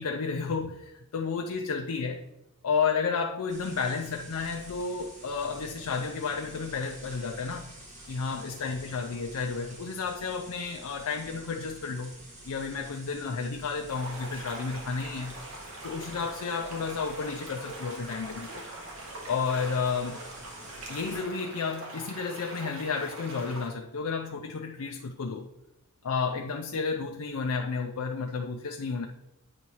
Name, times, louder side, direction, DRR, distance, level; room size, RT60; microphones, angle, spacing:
voice 1, 0.0-2.2 2.6-7.7 8.1-12.1 12.5-15.4 15.8-18.7 19.3-20.2 20.9-25.5 26.0-29.1, left 5 dB, 85° left, 3 dB, 0.5 m, -32 dB
sound 1, 3.5-21.2, right 1 dB, 30° right, 1.6 m, -49 dB
sound 2, 13.9-23.7, right 2 dB, 60° right, 1.3 m, -42 dB
8.6 x 3.0 x 5.4 m, 0.94 s
head